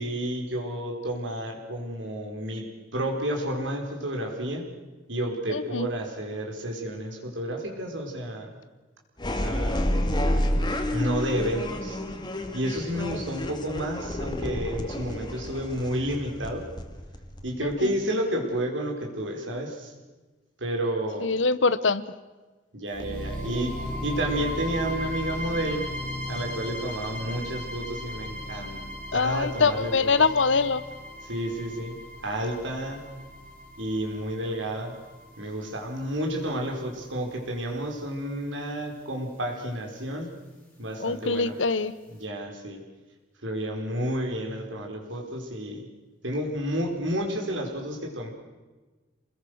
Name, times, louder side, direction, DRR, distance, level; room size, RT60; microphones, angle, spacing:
voice 1, 0.0-4.7 5.1-8.5 9.4-9.9 10.9-12.0 12.5-16.6 17.4-19.9 20.6-21.3 22.7-23.8 24.0-25.9 26.2-30.1 31.2-33.1 33.8-34.9 35.4-40.3 40.8-41.5 42.1-42.8 43.4-45.9 46.2-48.3, right 1 dB, 80° right, 1 dB, 4.7 m, -31 dB
voice 2, 5.5-5.9 17.6-17.9 21.2-22.0 29.1-30.8 41.0-41.9, left 4 dB, 80° left, 16 dB, 1.1 m, -24 dB
sound 1, 9.2-17.8, left 1 dB, 25° left, 2.1 m, -30 dB
sound 2, 22.9-36.9, left 1 dB, 5° left, 3.9 m, -37 dB
28.0 x 21.0 x 6.5 m, 1.2 s
head